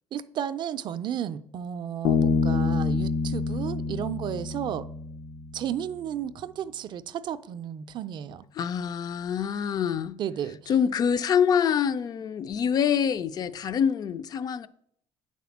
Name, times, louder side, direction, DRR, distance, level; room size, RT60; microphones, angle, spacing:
voice 1, 0.1-4.9 5.5-8.4 10.2-10.7, right 9 dB, 40° right, 0.4 m, -33 dB
Bass guitar, 2.0-5.6, left 5 dB, 85° left, 0.7 m, -27 dB
voice 2, 8.6-10.2 10.7-14.7, left 7 dB, 35° left, 0.4 m, -25 dB
8.9 x 4.2 x 7.1 m
cardioid pair, 160°, 11 cm